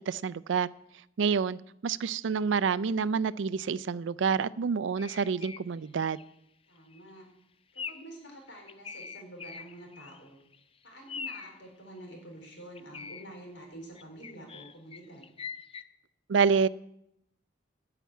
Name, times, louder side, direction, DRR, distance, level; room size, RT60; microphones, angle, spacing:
voice 1, 0.1-0.7 1.2-6.2 16.3-16.7, right 6 dB, 75° right, 17 dB, 0.4 m, -28 dB
sound 1, 5.0-5.7 6.0-6.3 6.8-7.0 7.8-8.2 8.5-10.3 10.5-10.6 11.1-11.6 12.5-13.3 14.0-15.8, left 6 dB, 30° left, 0.5 m, -42 dB
voice 2, 6.7-7.3 7.7-10.4 10.8-15.3, right 1 dB, 75° left, 2 dB, 4.2 m, -48 dB
12.5 x 5.9 x 9.2 m, 0.80 s
head